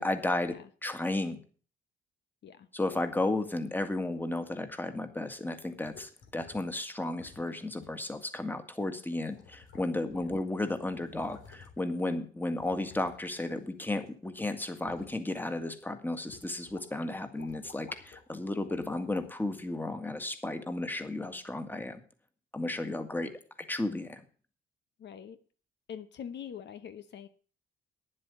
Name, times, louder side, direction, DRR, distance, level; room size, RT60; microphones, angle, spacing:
voice 1, 0.0-1.4 2.7-22.0 22.5-23.3 23.7-24.2, left 2 dB, 10° left, 8 dB, 1.8 m, -33 dB
sound 1, 5.8-6.8 7.2-7.5 7.8-8.0 8.8-8.9 9.3-10.2 10.5-11.9 12.6-14.1 14.4-15.2 15.7-15.8 16.3-16.8 17.1-18.2 18.6-19.3 20.0-20.1, left 6 dB, 85° left, 3.2 m, -54 dB
voice 2, 25.0-25.4 25.9-27.3, left 8 dB, 60° left, 11 dB, 1.0 m, -44 dB
10.0 x 7.6 x 8.2 m, 0.40 s
cardioid pair, 90°, 20 cm